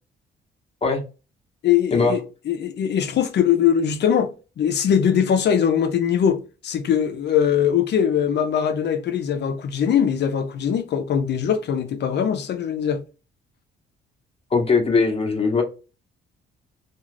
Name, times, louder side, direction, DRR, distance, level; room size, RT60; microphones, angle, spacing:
voice 1, 1.6-2.2 2.5-4.3 4.6-13.0, left 8 dB, 60° left, 0.6 m, -21 dB
voice 2, 14.5-15.6, left 4 dB, 30° left, 1.0 m, -20 dB
2.5 x 2.4 x 3.2 m
cardioid pair, 90°, 20 cm